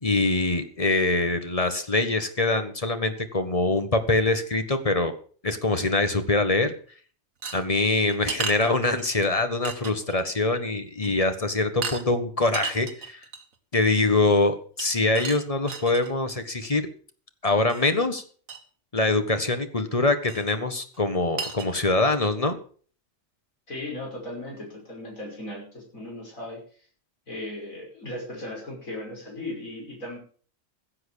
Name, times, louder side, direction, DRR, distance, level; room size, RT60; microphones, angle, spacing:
voice 1, 0.0-5.1 5.4-6.7 7.5-13.2 13.7-16.9 17.4-18.2 18.9-22.6, left 2 dB, 25° left, 8 dB, 1.5 m, -24 dB
sound 1, 7.4-9.3 9.6-10.2 10.6-10.7 11.0-11.3 11.8-12.0 12.4-13.5 14.8-16.1 17.7-17.9 18.2-18.3 18.5-18.6 20.3-20.5 20.9-21.0 21.4-21.7, right 5 dB, 80° right, 1.9 m, -34 dB
voice 2, 23.7-26.6 27.3-30.2, left 1 dB, 80° left, -2 dB, 6.2 m, -37 dB
16.0 x 7.8 x 6.4 m, 0.44 s
omnidirectional pair, 1.4 m